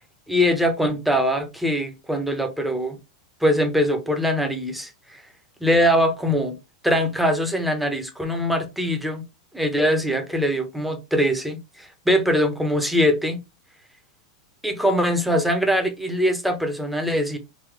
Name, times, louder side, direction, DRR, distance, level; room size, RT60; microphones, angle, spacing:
voice 1, 0.3-3.0 3.4-5.2 5.6-6.6 6.8-9.2 9.5-13.4 14.6-17.4, equal, ahead, 0.9 m, -22 dB
3.9 x 2.6 x 3.2 m
supercardioid pair, 130°, 3 cm